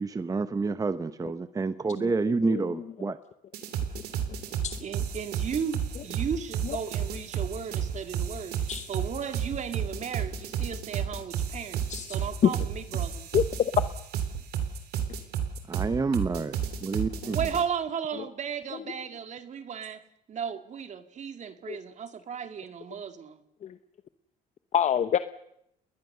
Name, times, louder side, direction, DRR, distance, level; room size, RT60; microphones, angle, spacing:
voice 1, 0.0-3.2 15.7-17.4, right 4 dB, 20° right, 13 dB, 0.9 m, -29 dB
sound 1, 3.5-17.6, right 8 dB, 70° right, 3.4 m, -32 dB
voice 2, 4.8-11.8 12.1-13.3 17.3-20.0 20.3-23.4, right 7 dB, 45° right, 9 dB, 2.1 m, -35 dB
voice 3, 24.7-25.2, left 9 dB, 45° left, 12 dB, 0.9 m, -26 dB
29.0 x 20.5 x 6.8 m, 0.78 s
cardioid pair, 110°, 17 cm